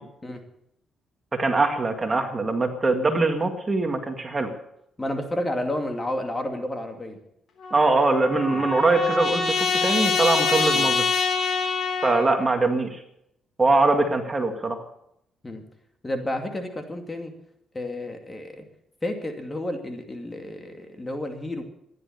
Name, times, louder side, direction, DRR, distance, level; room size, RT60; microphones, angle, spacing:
voice 1, 1.3-4.5 7.7-11.0 12.0-13.0 13.6-14.8, right 3 dB, 25° right, 5 dB, 2.0 m, -22 dB
voice 2, 5.0-7.2 8.5-8.6 10.7-10.9 15.4-15.6 16.0-17.3 17.7-18.6 19.0-21.6, left 1 dB, 20° left, 4 dB, 2.5 m, -31 dB
Trumpet, 7.6-12.3, left 5 dB, 60° left, 3.3 m, -25 dB
15.0 x 11.0 x 6.8 m, 0.76 s
cardioid pair, 90°, 0 cm